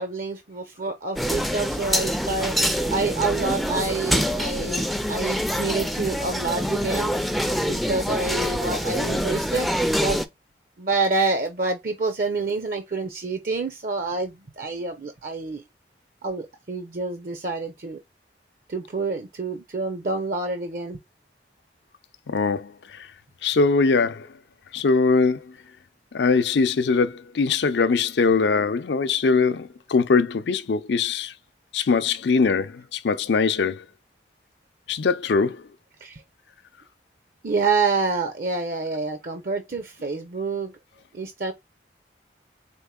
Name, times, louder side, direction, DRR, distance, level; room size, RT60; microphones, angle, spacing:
voice 1, 0.0-2.6 2.9-7.1 7.5-9.7 10.0-10.3 10.8-15.6 16.2-18.0 18.7-21.0 36.0-36.2 37.4-40.7 41.1-41.5, right 3 dB, 50° right, 0.6 m, -27 dB
sound 1, 1.2-10.3, equal, ahead, 0.3 m, -25 dB
voice 2, 22.3-22.7 23.4-24.3 24.7-25.4 26.1-31.3 31.7-33.8 34.9-35.6, left 4 dB, 80° left, 0.5 m, -21 dB
4.4 x 3.6 x 2.2 m
head